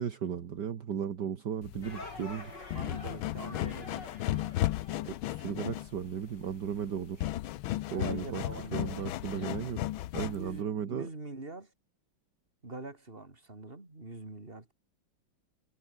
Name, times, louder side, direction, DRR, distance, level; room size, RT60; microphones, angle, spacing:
voice 1, 0.0-2.5 4.9-7.3 7.9-8.4 8.7-9.8 10.1-11.1, right 8 dB, 60° right, 2.0 m, -35 dB
sound 1, 1.6-10.6, left 15 dB, 90° left, 1.6 m, -35 dB
sound 2, 1.8-5.4, left 2 dB, 60° left, 6.7 m, -47 dB
voice 2, 2.7-4.1 7.9-9.5 10.3-11.7 12.6-14.7, right 2 dB, 25° right, 3.9 m, -44 dB
omnidirectional pair, 2.2 m